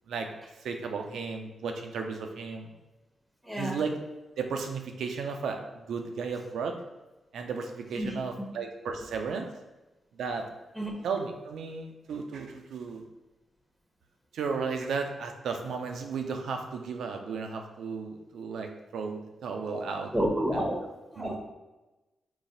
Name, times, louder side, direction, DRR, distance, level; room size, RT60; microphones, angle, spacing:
voice 1, 0.6-2.7 3.6-3.9 4.4-6.8 7.3-9.5 10.1-10.4 11.0-13.0 14.3-20.1 20.5-20.6 21.2-21.4, right 5 dB, 80° right, 4 dB, 0.5 m, -34 dB
voice 2, 3.4-3.8 8.0-8.1 10.8-10.9 19.7-19.8 20.1-20.8 21.1-21.4, equal, ahead, 0 dB, 1.0 m, -29 dB
4.0 x 2.3 x 3.8 m, 1.1 s
supercardioid pair, 50°, 0 cm